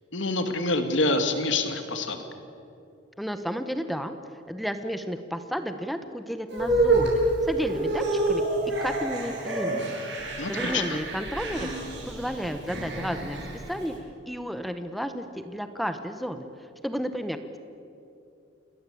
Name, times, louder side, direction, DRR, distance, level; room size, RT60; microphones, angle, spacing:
voice 1, 0.1-2.2 10.4-11.0, left 2 dB, 75° left, 7 dB, 2.5 m, -26 dB
voice 2, 3.2-4.1 4.5-10.0 10.5-11.7 12.0-13.9 14.3-16.5 16.8-17.6, equal, ahead, 9 dB, 1.1 m, -32 dB
sound 1, 6.5-13.9, right 2 dB, 60° right, 7.1 m, -28 dB
28.5 x 20.0 x 8.5 m, 2.7 s
head